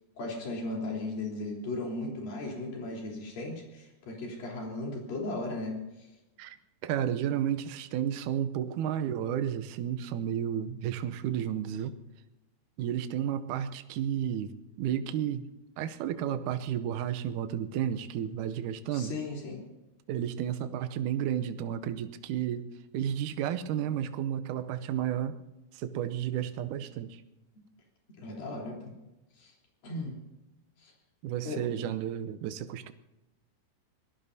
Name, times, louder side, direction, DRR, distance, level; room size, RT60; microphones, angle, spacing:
voice 1, 0.2-6.1 18.9-19.6 28.2-28.8 29.4-29.5 29.8-30.2 30.8-30.9 31.4-31.9, left 2 dB, 65° left, -2 dB, 5.3 m, -36 dB
voice 2, 6.8-11.9 12.8-15.5 15.8-19.1 20.1-22.7 22.9-25.4 25.7-27.2 31.2-32.9, right 10 dB, 75° right, 9 dB, 1.9 m, -32 dB
25.5 x 19.0 x 2.7 m, 0.98 s
omnidirectional pair, 4.5 m